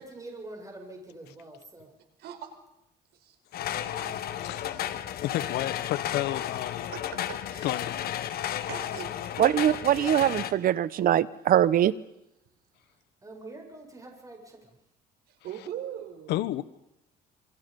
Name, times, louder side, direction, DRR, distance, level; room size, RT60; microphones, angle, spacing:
voice 1, 0.0-1.9 13.2-14.8, right 2 dB, 20° right, 7.8 m, -45 dB
voice 2, 2.2-2.6 3.1-3.4 3.6-4.2 4.7-4.8 6.9-7.8 8.7-9.6 15.3-16.5, right 9 dB, 75° right, 4.9 m, -42 dB
voice 3, 3.5-3.9 4.3-4.8 5.2-6.9 7.2-8.2 16.3-16.6, left 14 dB, 80° left, 1.2 m, -32 dB
sound 1, 3.5-10.5, left 11 dB, 65° left, 1.6 m, -33 dB
voice 4, 9.4-11.9, right 11 dB, 60° right, 1.0 m, -22 dB
28.0 x 23.5 x 5.4 m
cardioid pair, 110°, 17 cm